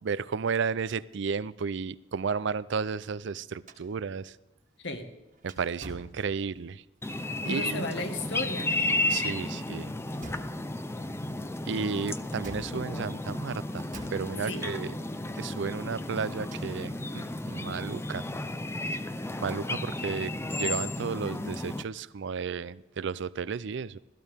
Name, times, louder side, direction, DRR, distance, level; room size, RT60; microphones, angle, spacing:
voice 1, 0.0-4.4 5.4-6.8 7.4-7.9 9.1-9.9 11.6-14.9 15.4-18.2 19.4-24.0, right 5 dB, 65° right, 18 dB, 0.5 m, -33 dB
sound 1, 3.7-6.8 10.2-10.9 12.4-13.3 13.9-14.8 16.0-16.9, right 1 dB, 45° right, 1.7 m, -47 dB
voice 2, 4.8-5.1 7.5-8.9 14.4-14.7, left 2 dB, 65° left, 6 dB, 1.7 m, -35 dB
sound 2, 7.0-21.8, left 2 dB, 15° left, 0.6 m, -33 dB
17.0 x 14.0 x 3.6 m, 1.0 s
head